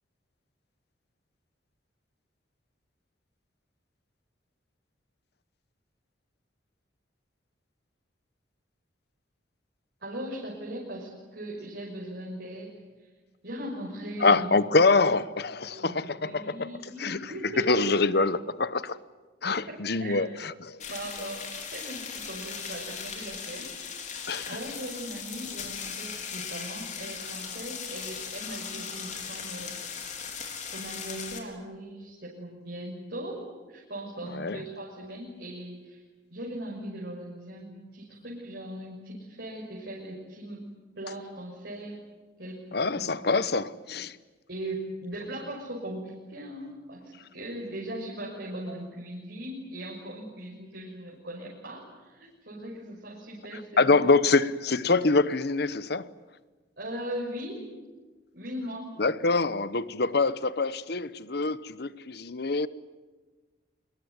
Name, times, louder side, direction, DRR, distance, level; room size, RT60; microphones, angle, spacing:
voice 1, 10.0-12.7 13.4-14.5 15.7-17.8 19.7-20.3 20.8-23.7 24.4-29.8 30.7-36.0 36.3-40.7 41.0-42.0 42.4-42.7 43.0-43.1 44.5-54.0 56.8-57.7 58.3-58.9, right 1 dB, 60° right, 6.1 m, -39 dB
voice 2, 14.2-17.3 17.6-19.0 19.4-20.8 24.3-24.6 34.2-34.6 42.7-44.2 53.5-56.1 59.0-62.7, left 3 dB, 55° left, 1.0 m, -25 dB
sound 1, 20.8-31.4, left 6 dB, 40° left, 4.0 m, -38 dB
26.5 x 22.5 x 9.6 m
head